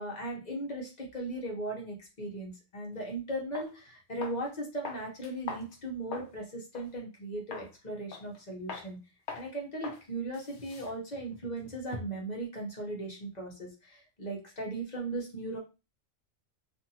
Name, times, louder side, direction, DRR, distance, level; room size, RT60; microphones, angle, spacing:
voice 1, 0.0-9.0 9.3-15.6, right 1 dB, 35° left, -1 dB, 0.9 m, -38 dB
sound 1, 3.0-3.1 3.5-3.7 4.2-4.5 4.8-6.4 6.7-6.9 7.5-7.7 8.1-8.4 8.7-8.9 9.3-9.5 9.8-10.0 10.3-12.3, left 5 dB, 65° left, 0.9 m, -42 dB
2.6 x 2.5 x 2.8 m, 0.28 s
omnidirectional pair, 1.4 m